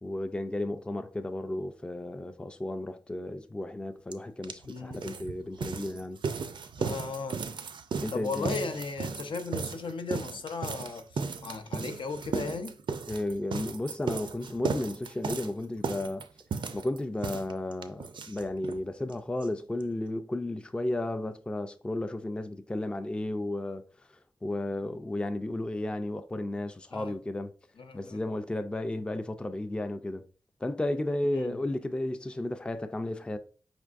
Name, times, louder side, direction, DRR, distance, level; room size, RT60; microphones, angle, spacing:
voice 1, 0.0-6.2 8.0-8.5 13.1-16.3 16.7-23.8 24.4-27.5 27.9-30.2 30.6-33.4, left 1 dB, 10° left, 0.3 m, -33 dB
sound 1, 4.1-4.2 4.4-18.8 19.1-19.2 19.4-19.5 19.8-19.9, right 5 dB, 70° right, 0.4 m, -35 dB
voice 2, 4.6-5.0 6.8-7.4 8.1-12.8 26.9-27.1 27.8-28.2 31.3-31.6, left 4 dB, 80° left, 0.5 m, -36 dB
5.1 x 3.5 x 2.5 m
wide cardioid pair, 130°, 8 cm